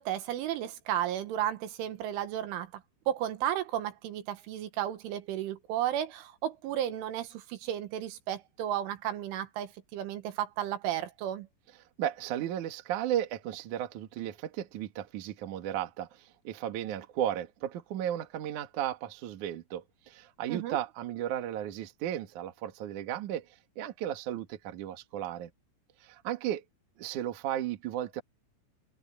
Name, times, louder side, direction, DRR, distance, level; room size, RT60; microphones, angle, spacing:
voice 1, 0.0-2.7 3.1-11.5 20.5-20.8, right 11 dB, 80° right, 3.8 m, -33 dB
voice 2, 12.0-23.5 23.8-25.5 26.0-26.6 27.0-28.2, right 11 dB, 60° right, 2.2 m, -34 dB
omnidirectional pair, 5.8 m